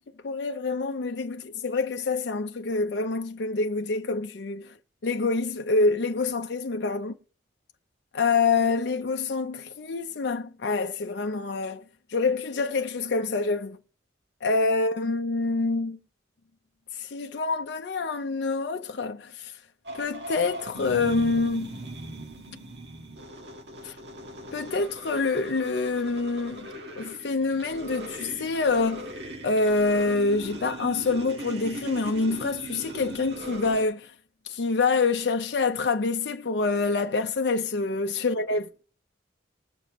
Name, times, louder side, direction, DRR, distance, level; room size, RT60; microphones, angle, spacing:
voice 1, 0.2-4.7 5.0-7.1 8.1-11.8 12.1-13.8 14.4-16.0 16.9-19.5 19.9-21.8 23.8-24.0 24.5-29.1 29.4-34.1 34.4-38.6, left 3 dB, 60° left, 0.5 m, -26 dB
sound 1, 19.8-33.8, right 1 dB, 60° right, 1.6 m, -39 dB
20.0 x 6.7 x 3.0 m
head